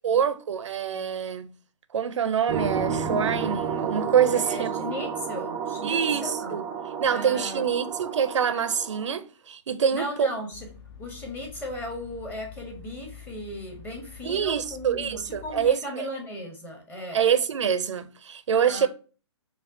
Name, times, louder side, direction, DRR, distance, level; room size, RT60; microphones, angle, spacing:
voice 1, 0.0-1.5 1.9-4.8 5.8-6.6 7.0-10.3 14.2-16.1 17.1-18.9, right 8 dB, 80° right, 0.5 m, -25 dB
sound 1, 2.5-9.1, right 6 dB, 15° right, 0.3 m, -31 dB
voice 2, 4.3-6.6 7.0-7.7 9.9-10.7 11.0-17.2 18.6-18.9, left 1 dB, 10° left, 0.8 m, -37 dB
sound 2, 10.5-15.7, left 7 dB, 45° left, 0.5 m, -47 dB
5.1 x 2.3 x 2.6 m
hypercardioid pair, 145°, 15 cm